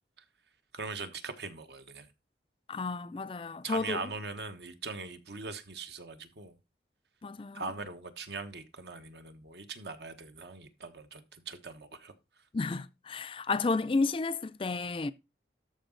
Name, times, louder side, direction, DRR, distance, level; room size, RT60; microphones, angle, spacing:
voice 1, 0.7-2.1 3.6-6.5 7.5-12.1, right 4 dB, 70° right, 1.2 m, -41 dB
voice 2, 2.7-4.0 7.2-7.6 12.5-15.1, left 3 dB, 30° left, 0.4 m, -32 dB
13.0 x 4.9 x 3.9 m
head